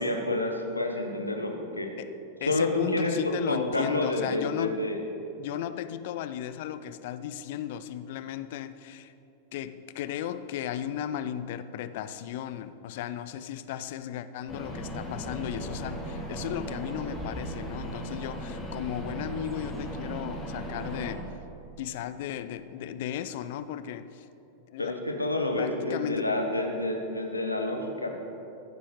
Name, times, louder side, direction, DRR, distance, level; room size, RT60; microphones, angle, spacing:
voice 1, 0.0-1.9 2.4-5.0 24.8-28.2, left 2 dB, 85° left, 3 dB, 1.1 m, -29 dB
voice 2, 2.4-4.8 5.4-9.1 9.5-21.2 21.8-24.3 24.7-25.0 25.6-26.3, left 10 dB, 50° left, 13 dB, 0.4 m, -35 dB
sound 1, 14.5-21.1, right 1 dB, 10° left, 2.5 m, -37 dB
16.0 x 9.5 x 3.2 m, 2.8 s
figure-of-eight pair, 90°, 0 cm